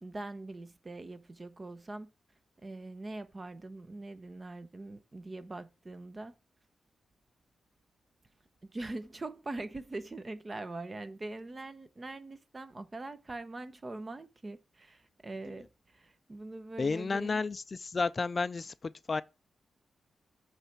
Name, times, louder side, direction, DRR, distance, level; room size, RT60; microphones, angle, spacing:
voice 1, 0.0-2.1 2.6-6.4 8.6-17.4, right 2 dB, 30° right, 0.9 m, -42 dB
voice 2, 16.8-19.2, left 4 dB, 40° left, 0.4 m, -32 dB
8.1 x 3.3 x 5.8 m
cardioid pair, 80°, 0 cm